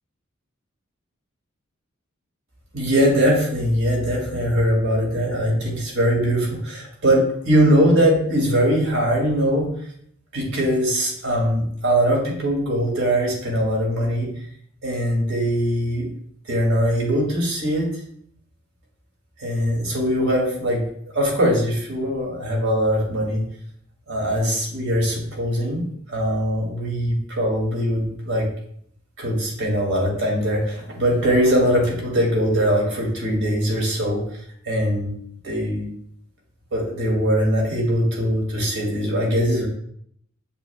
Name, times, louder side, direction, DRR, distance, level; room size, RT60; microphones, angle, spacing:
voice 1, 2.7-9.7 10.3-14.3 14.8-16.1 16.4-17.9 19.4-20.8 21.1-23.4 24.1-25.8 26.1-28.5 29.2-34.2 34.6-35.2 35.4-35.9 36.7-39.7, equal, 80° right, -2 dB, 2.4 m, -21 dB
7.3 x 6.8 x 2.3 m, 0.67 s
head